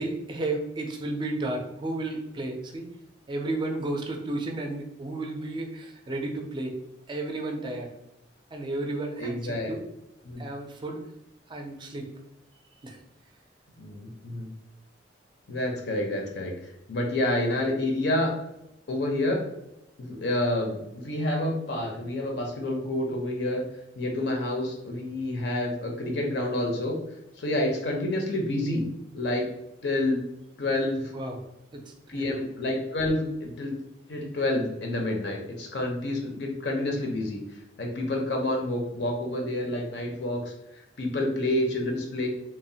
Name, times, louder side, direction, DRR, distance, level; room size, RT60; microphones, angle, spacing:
voice 1, 0.0-2.8 3.3-6.7 7.1-7.9 8.5-9.8 10.4-11.0 11.5-12.1 12.8-13.0 31.1-31.4 31.7-32.3, right 2 dB, 25° right, 3 dB, 0.4 m, -33 dB
voice 2, 9.2-9.7 10.2-10.4 13.8-14.5 15.5-18.3 18.9-19.4 20.0-23.6 23.9-27.0 27.4-28.8 29.1-29.5 29.8-30.2 30.6-31.1 32.1-33.8 34.1-37.4 37.8-42.3, left 1 dB, 65° left, 1 dB, 0.5 m, -28 dB
2.9 x 2.0 x 2.6 m, 0.87 s
head